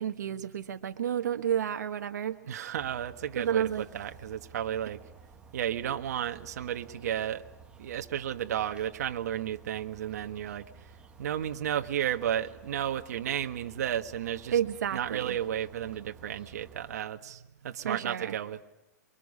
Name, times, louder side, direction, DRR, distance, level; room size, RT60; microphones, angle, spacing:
voice 1, 0.0-2.4 3.4-3.8 14.5-15.4 17.8-18.4, right 9 dB, 85° right, 1.2 m, -30 dB
voice 2, 2.4-5.0 5.5-7.4 7.8-14.6 14.9-18.6, right 10 dB, 65° right, 1.5 m, -33 dB
sound 1, 2.7-17.0, right 5 dB, 10° right, 1.3 m, -54 dB
27.5 x 23.5 x 5.5 m
hypercardioid pair, 155°, 9 cm